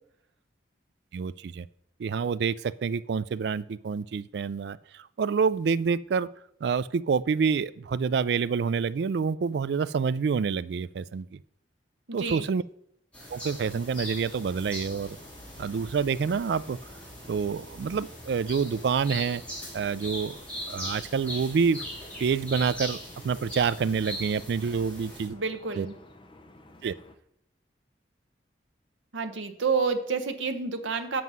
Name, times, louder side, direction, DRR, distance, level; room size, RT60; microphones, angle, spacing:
voice 1, 1.1-1.7 2.0-6.3 6.6-11.4 12.1-12.6 13.3-15.2 15.6-16.8 17.3-19.4 19.7-20.4 20.7-21.9 22.2-23.0 23.2-25.3 25.8-25.9 26.8-26.9, right 5 dB, 65° right, 17 dB, 0.3 m, -27 dB
voice 2, 12.1-12.5 25.3-26.0 29.1-31.2, right 5 dB, 85° right, 8 dB, 0.8 m, -29 dB
sound 1, 13.1-25.3, equal, 5° left, 2.7 m, -40 dB
sound 2, 13.5-27.2, left 1 dB, 25° left, 0.7 m, -53 dB
7.7 x 6.1 x 5.5 m, 0.72 s
head